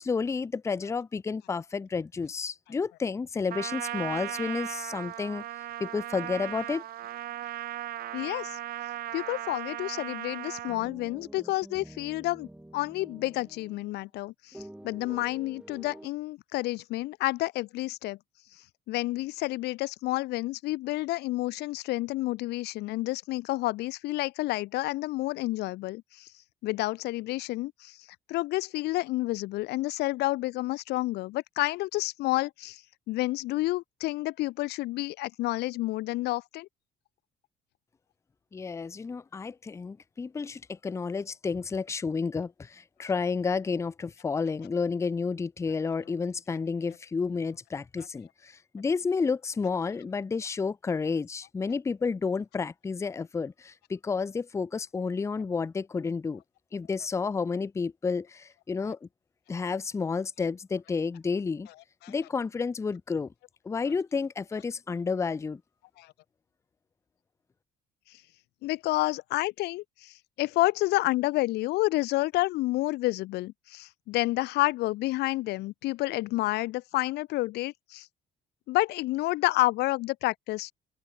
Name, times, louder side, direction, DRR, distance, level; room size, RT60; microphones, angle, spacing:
voice 1, 0.0-5.4 5.8-6.8 38.5-56.4 56.7-59.0 59.5-61.7 62.1-63.3 63.6-65.6, left 5 dB, 15° left, 0.5 m, -31 dB
Trumpet, 3.5-10.8, right 13 dB, 60° right, 0.8 m, -37 dB
voice 2, 8.1-8.6 9.1-18.2 18.9-26.3 26.6-28.0 28.3-32.8 33.1-36.7 62.0-62.1 66.0-66.1 68.6-78.1 78.7-80.7, left 18 dB, 75° left, 0.5 m, -29 dB
sound 1, 10.7-14.1 14.5-16.1, right 1 dB, 5° right, 2.8 m, -48 dB
open air
cardioid pair, 110°, 17 cm